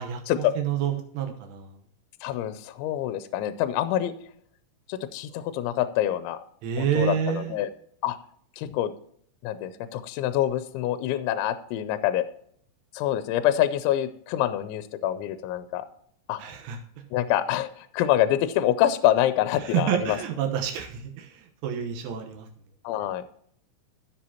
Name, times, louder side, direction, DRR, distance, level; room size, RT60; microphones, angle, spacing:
voice 1, 0.0-1.7 6.6-7.5 16.4-16.8 19.7-22.5, right 9 dB, 80° right, 4 dB, 3.5 m, -28 dB
voice 2, 2.2-4.1 4.9-6.4 6.8-7.7 8.0-8.2 8.6-8.9 9.4-12.2 12.9-15.9 16.3-16.4 17.1-20.2 22.8-23.2, left 12 dB, 85° left, 12 dB, 2.8 m, -26 dB
14.0 x 7.4 x 2.8 m, 0.63 s
omnidirectional pair, 5.6 m